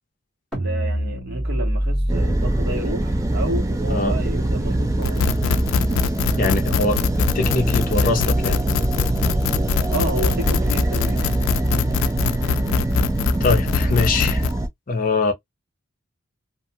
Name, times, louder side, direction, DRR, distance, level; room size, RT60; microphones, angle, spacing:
sound 1, 0.5-6.8, equal, 5° left, 1.0 m, -28 dB
voice 1, 0.6-5.4 9.9-11.3, right 1 dB, 50° right, 1.1 m, -31 dB
sound 2, 2.1-14.7, right 1 dB, 15° right, 0.4 m, -23 dB
sound 3, 5.0-14.5, left 7 dB, 90° left, 0.3 m, -23 dB
voice 2, 6.4-8.6 13.4-14.5 14.9-15.3, left 3 dB, 45° left, 0.6 m, -22 dB
2.5 x 2.2 x 2.8 m
head